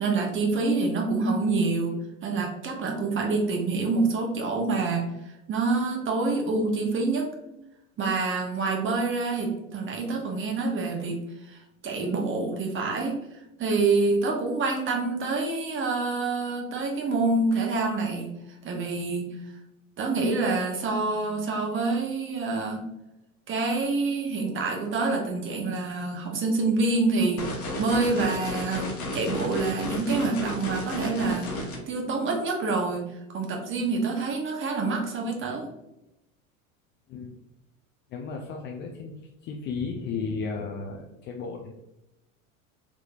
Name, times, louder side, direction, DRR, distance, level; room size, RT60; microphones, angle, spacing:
voice 1, 0.0-2.0 2.2-5.1 5.5-7.4 8.0-11.2 11.5-11.6 11.8-18.3 18.6-19.3 20.0-22.8 23.5-33.1 33.3-35.7, right 3 dB, 30° right, 1 dB, 0.8 m, -27 dB
sound 1, 27.4-31.8, left 1 dB, 80° left, 1.0 m, -33 dB
voice 2, 38.1-39.1 39.4-41.7, left 4 dB, 30° left, 1 dB, 0.3 m, -34 dB
3.5 x 3.0 x 2.4 m, 0.90 s
hypercardioid pair, 80°, 43 cm